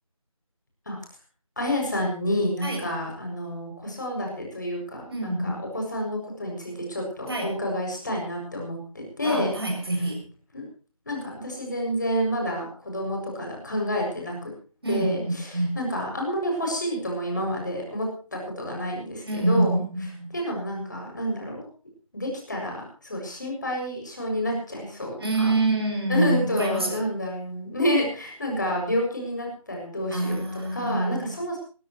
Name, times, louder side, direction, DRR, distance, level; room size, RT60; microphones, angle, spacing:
voice 1, 1.6-9.5 10.5-10.7 11.1-14.5 14.9-19.8 20.3-21.7 22.1-25.6 26.1-30.4 30.7-31.6, equal, 30° left, 0 dB, 7.3 m, -29 dB
voice 2, 5.1-5.6 7.3-7.5 9.2-10.3 14.8-15.2 15.5-15.8 19.3-20.3 25.2-27.0 30.1-31.4, right 2 dB, 45° right, 2 dB, 7.5 m, -26 dB
20.0 x 19.5 x 3.2 m, 0.38 s
figure-of-eight pair, 170°, 18 cm